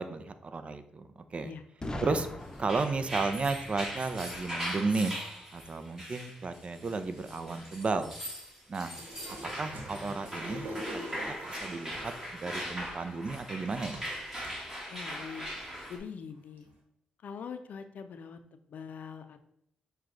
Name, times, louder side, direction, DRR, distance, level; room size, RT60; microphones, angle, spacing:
voice 1, 0.0-1.5 2.0-2.3 2.6-5.2 5.5-8.1 8.7-9.0 9.4-14.0, right 3 dB, 45° right, 10 dB, 0.5 m, -33 dB
Boom, 1.8-5.6, left 1 dB, 25° left, 0.7 m, -43 dB
sound 1, 2.5-16.0, equal, 15° right, 1.6 m, -40 dB
sound 2, 8.9-11.9 12.9-13.0 13.9-14.5 15.1-15.2 15.5-15.9 16.7-16.8, equal, 75° right, 1.0 m, -42 dB
voice 2, 14.9-15.5 15.9-16.7 17.2-19.4, left 6 dB, 70° left, 9 dB, 0.4 m, -43 dB
6.1 x 2.3 x 3.8 m, 0.74 s
cardioid pair, 60°, 3 cm